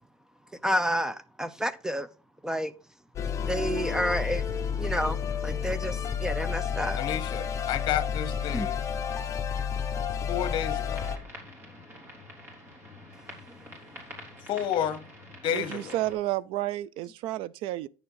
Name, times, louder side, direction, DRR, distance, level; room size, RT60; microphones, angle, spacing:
voice 1, 0.6-2.1 2.4-2.7 3.5-4.4 4.8-5.2 5.4-7.0 8.5-8.7, equal, 5° right, 0.5 m, -29 dB
sound 1, 3.2-11.2, left 7 dB, 30° left, 1.1 m, -31 dB
voice 2, 6.9-8.8 10.3-11.1 14.5-15.0 15.4-16.0, left 10 dB, 55° left, 1.3 m, -31 dB
sound 2, 11.0-16.1, equal, 25° right, 3.5 m, -46 dB
voice 3, 15.5-17.9, right 15 dB, 65° right, 0.4 m, -31 dB
9.4 x 6.9 x 3.9 m
cardioid pair, 130°, 10 cm